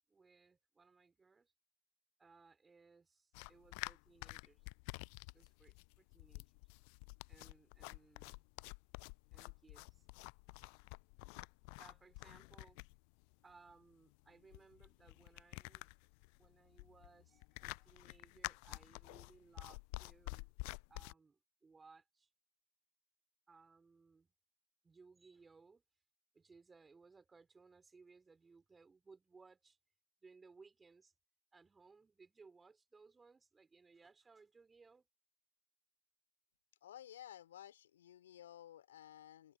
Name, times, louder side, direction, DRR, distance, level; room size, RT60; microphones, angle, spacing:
voice 1, 0.1-1.5 2.2-4.7 5.3-6.6 7.3-8.4 9.3-10.1 11.7-12.9 13.4-15.9 16.4-20.5 20.9-22.3 23.5-24.3 24.8-25.8 26.3-29.8 30.2-31.1 31.5-35.1, right 4 dB, 15° right, 5.7 m, -64 dB
sound 1, 3.3-21.1, left 40 dB or more, 45° left, 0.7 m, -50 dB
voice 2, 36.8-39.6, left 11 dB, 60° left, 3.5 m, -55 dB
figure-of-eight pair, 90°, 0 cm